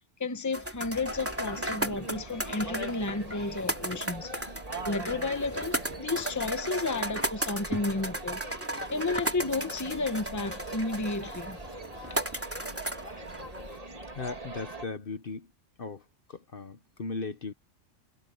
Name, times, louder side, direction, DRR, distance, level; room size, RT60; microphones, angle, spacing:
voice 1, 0.2-4.3 4.8-8.4 8.9-11.6, left 3 dB, 15° left, 1.0 m, -32 dB
sound 1, 0.5-13.8, right 1 dB, 10° right, 2.9 m, -35 dB
sound 2, 1.1-14.8, right 2 dB, 30° right, 2.5 m, -42 dB
voice 2, 14.1-15.5 15.8-16.0 16.3-17.5, left 4 dB, 45° left, 1.2 m, -37 dB
omnidirectional pair, 1.3 m